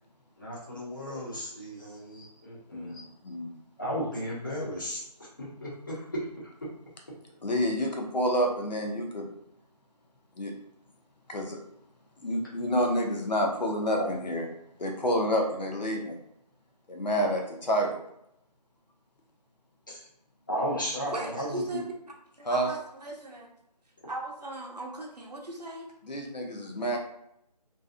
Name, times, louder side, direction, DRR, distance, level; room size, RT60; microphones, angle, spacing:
voice 1, 0.4-3.0 3.8-5.0 5.4-6.5 19.9-20.0 20.5-21.8, equal, 30° left, -6 dB, 0.7 m, -34 dB
voice 2, 7.4-9.3 10.4-10.5 11.3-11.6 12.2-14.4 14.8-16.2 16.9-18.0 22.4-22.7 26.0-27.0, equal, 80° left, 2 dB, 0.8 m, -28 dB
voice 3, 21.1-21.9 22.4-23.5 24.1-25.9, right 2 dB, 75° right, -1 dB, 0.7 m, -38 dB
2.6 x 2.3 x 2.5 m, 0.77 s
figure-of-eight pair, 165°, 21 cm